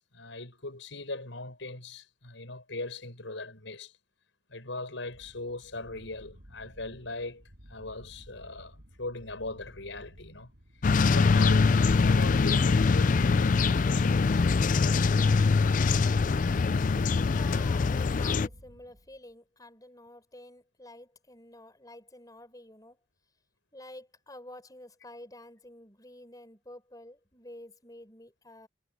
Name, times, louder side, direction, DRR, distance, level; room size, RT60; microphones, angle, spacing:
voice 1, 0.1-3.9 4.5-7.4 7.7-10.5 11.0-14.5, left 2 dB, 85° left, 6.0 m, -40 dB
sound 1, 5.0-19.3, equal, 60° right, 7.6 m, -53 dB
sound 2, 10.8-18.5, left 4 dB, 45° left, 0.4 m, -23 dB
voice 2, 17.3-23.0 23.7-28.7, left 1 dB, 20° left, 5.8 m, -49 dB
head